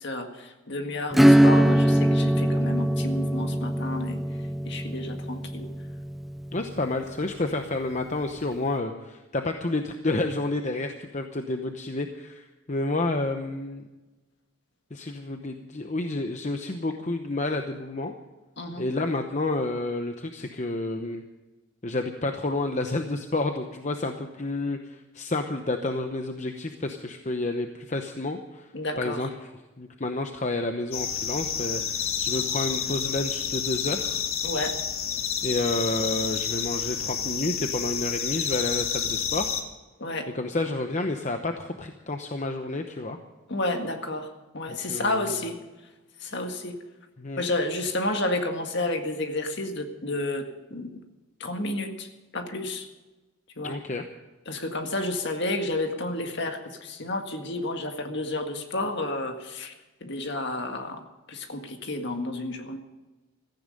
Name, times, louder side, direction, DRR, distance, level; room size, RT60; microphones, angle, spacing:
voice 1, 0.0-4.2 4.7-5.7 18.6-18.9 28.7-29.3 34.4-34.8 40.0-40.3 43.5-45.6 46.2-46.8 47.4-51.0 51.4-52.1 52.3-52.9 53.6-53.8 54.5-59.7 60.0-61.0 61.3-62.8, left 2 dB, 55° left, 5 dB, 1.8 m, -31 dB
Acoustic guitar / Strum, 1.1-7.4, equal, ahead, 0.4 m, -22 dB
voice 2, 6.5-13.8 14.9-18.1 18.8-21.2 21.8-28.7 29.0-29.3 29.8-34.2 35.4-39.6 40.3-43.2 44.7-45.3 46.2-46.3 47.2-47.4 53.6-54.0, left 2 dB, 35° left, 5 dB, 0.9 m, -30 dB
sound 1, 30.9-39.6, left 8 dB, 75° left, 1.7 m, -29 dB
16.0 x 14.5 x 5.3 m, 1.1 s
head